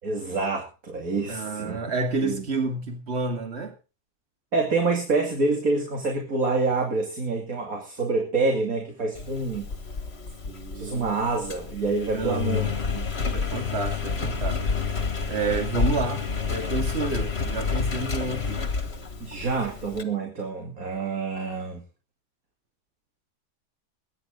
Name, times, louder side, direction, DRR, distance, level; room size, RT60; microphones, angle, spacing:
voice 1, 0.0-1.8 2.2-2.4 4.5-9.7 10.7-12.6 12.9-13.1 19.2-21.8, right 3 dB, 55° right, 2 dB, 3.0 m, -27 dB
voice 2, 1.3-3.7 10.5-11.2 12.1-12.7 13.3-14.6 15.3-18.6, right 3 dB, 40° right, 5 dB, 2.6 m, -30 dB
Engine, 9.2-20.0, left 5 dB, 40° left, 2.0 m, -29 dB
21.5 x 10.5 x 3.9 m, 0.33 s
omnidirectional pair, 1.7 m